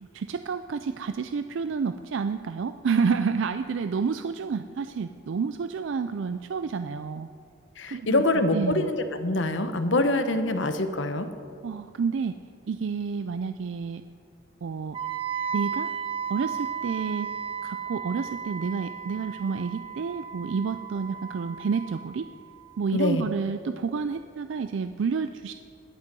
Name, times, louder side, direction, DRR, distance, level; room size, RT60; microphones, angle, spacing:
voice 1, 0.0-7.3 7.9-8.2 8.5-8.9 11.6-12.4 12.7-14.0 14.6-15.0 15.5-15.9 16.3-17.3 17.6-22.3 22.8-25.5, right 5 dB, 70° right, 9 dB, 0.4 m, -29 dB
voice 2, 7.8-11.3 22.9-23.3, left 2 dB, 70° left, 9 dB, 1.0 m, -25 dB
Wind instrument woodwind instrument, 14.9-22.9, right 7 dB, 25° right, 0.8 m, -35 dB
20.5 x 8.1 x 5.4 m, 2.4 s
head